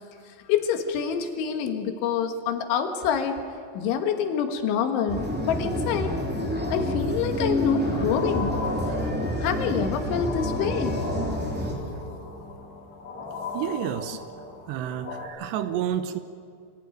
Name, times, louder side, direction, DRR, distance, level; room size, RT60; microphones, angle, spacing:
voice 1, 0.5-3.4 3.8-6.1 6.7-8.6 8.9-9.0 9.4-11.0, left 7 dB, 85° left, 6 dB, 4.0 m, -26 dB
sound 1, 5.1-11.7, left 1 dB, 5° right, 2.1 m, -28 dB
sound 2, 8.1-15.3, left 3 dB, 65° left, 4.5 m, -37 dB
voice 2, 8.9-9.2 13.5-14.2 14.7-16.2, right 10 dB, 75° right, 10 dB, 2.8 m, -30 dB
25.0 x 16.5 x 9.3 m, 2.3 s
omnidirectional pair, 5.3 m